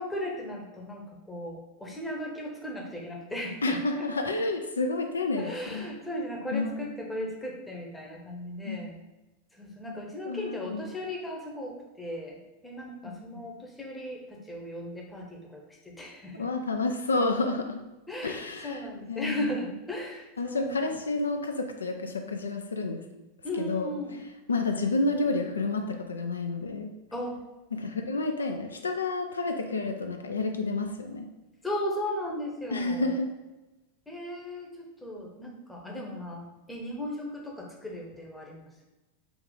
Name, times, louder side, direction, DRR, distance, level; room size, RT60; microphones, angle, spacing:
voice 1, 0.0-4.1 5.4-9.0 9.6-16.4 18.1-20.9 23.4-24.1 27.1-27.4 31.6-33.1 34.1-38.7, left 1 dB, 10° left, -1 dB, 0.8 m, -36 dB
voice 2, 3.6-5.9 6.5-6.9 8.6-8.9 10.2-10.9 13.0-13.5 16.3-17.8 18.2-19.5 20.4-23.1 23.6-24.2 24.5-27.0 27.7-31.3 32.7-33.4, left 3 dB, 75° left, 5 dB, 0.3 m, -30 dB
3.5 x 2.3 x 3.8 m, 1.1 s
figure-of-eight pair, 90°, 0 cm